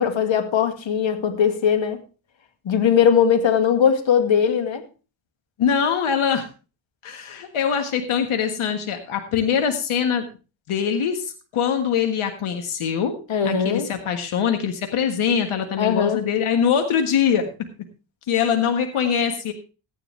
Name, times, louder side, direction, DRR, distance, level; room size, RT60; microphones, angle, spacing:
voice 1, 0.0-2.0 2.7-4.8 13.3-13.9 15.8-16.2, left 7 dB, 65° left, 1.9 m, -19 dB
voice 2, 5.6-6.5 7.0-10.3 10.7-13.2 13.4-17.5 18.3-19.5, left 7 dB, 90° left, 1.7 m, -23 dB
14.0 x 10.0 x 3.3 m
cardioid pair, 75°, 48 cm